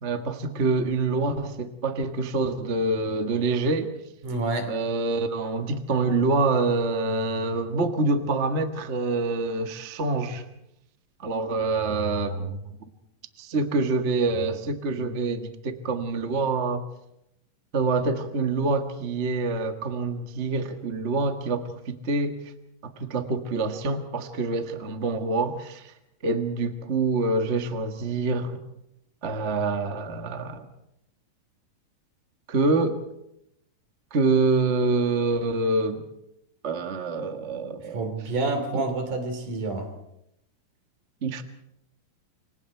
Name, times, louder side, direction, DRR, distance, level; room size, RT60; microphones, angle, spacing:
voice 1, 0.0-3.9 4.7-10.4 11.2-12.6 13.4-16.9 17.7-22.4 22.8-25.9 26.2-28.6 29.2-30.6 32.5-33.0 34.1-36.0 36.6-38.1 38.7-38.8 41.2-41.4, right 3 dB, 35° right, 6 dB, 1.0 m, -26 dB
voice 2, 4.2-4.7 37.9-39.9, right 3 dB, 65° right, 6 dB, 4.4 m, -28 dB
29.0 x 24.0 x 4.6 m, 0.82 s
omnidirectional pair, 3.9 m